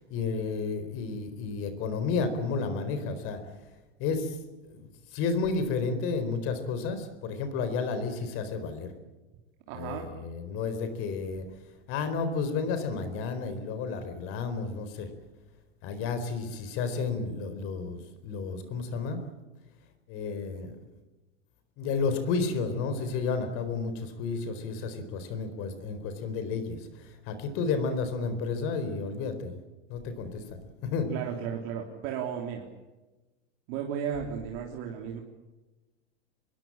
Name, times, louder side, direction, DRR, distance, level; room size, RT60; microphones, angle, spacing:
voice 1, 0.1-3.4 4.0-4.4 4.7-8.9 9.7-11.4 11.9-15.1 15.8-19.2 20.1-20.7 21.8-29.6 29.9-31.1, left 4 dB, 40° left, 10 dB, 4.4 m, -32 dB
voice 2, 9.7-10.1 31.1-32.7 33.7-35.2, right 8 dB, 45° right, 2 dB, 3.4 m, -34 dB
26.0 x 21.0 x 8.8 m, 1.1 s
supercardioid pair, 150°, 33 cm